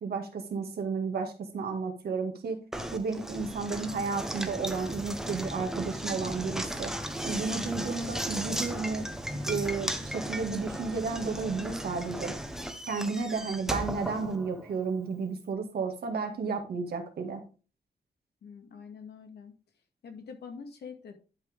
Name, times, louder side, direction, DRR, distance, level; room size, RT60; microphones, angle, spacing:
voice 1, 0.0-2.6 2.9-6.9 7.2-9.1 9.5-12.3 12.9-17.4, right 4 dB, 70° right, 5 dB, 2.0 m, -32 dB
Knock, 2.7-14.9, right 1 dB, 5° right, 1.1 m, -36 dB
voice 2, 18.4-19.5 20.0-21.1, left 5 dB, 80° left, 5 dB, 2.0 m, -45 dB
11.0 x 5.7 x 3.5 m, 0.35 s
wide cardioid pair, 155°, 17 cm